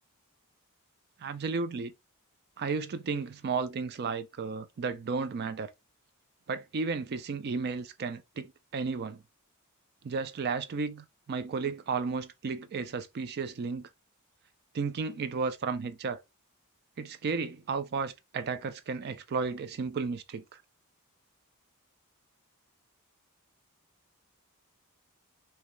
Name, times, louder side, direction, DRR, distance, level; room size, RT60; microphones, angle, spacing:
voice 1, 1.2-1.9 2.6-5.7 6.5-9.2 10.0-13.9 14.7-16.2 17.0-20.6, right 4 dB, 45° right, 0.4 m, -33 dB
2.8 x 2.2 x 3.1 m
head